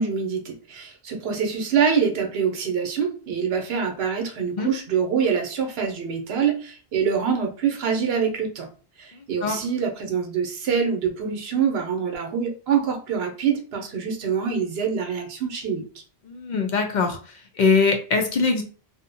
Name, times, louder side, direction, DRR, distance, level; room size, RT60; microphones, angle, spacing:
voice 1, 0.0-8.7 9.0-15.8, right 6 dB, 75° right, 3 dB, 0.9 m, -25 dB
voice 2, 4.4-4.7 9.4-9.6 16.2-17.2 17.6-18.6, left 4 dB, 55° left, 4 dB, 0.5 m, -22 dB
2.7 x 2.1 x 2.6 m, 0.39 s
omnidirectional pair, 1.1 m